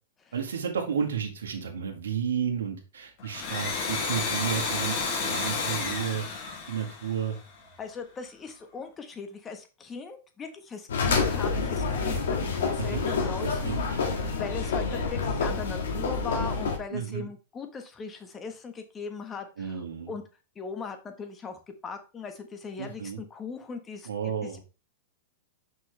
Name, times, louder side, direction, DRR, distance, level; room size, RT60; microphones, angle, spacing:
voice 1, 0.3-7.4 11.8-12.0 12.8-13.1 13.4-14.2 16.9-17.3 19.6-20.1 22.8-23.2 24.0-24.6, right 7 dB, 80° right, 2 dB, 1.8 m, -32 dB
Domestic sounds home sounds, 3.2-7.7, left 4 dB, 50° left, 2.4 m, -31 dB
voice 2, 7.8-13.7 14.2-20.2 20.5-24.1 24.4-24.6, left 5 dB, 20° left, 6 dB, 1.4 m, -39 dB
sound 1, 10.9-16.8, left 4 dB, 75° left, 1.9 m, -28 dB
6.3 x 5.5 x 3.3 m, 0.31 s
hypercardioid pair, 120°, 0 cm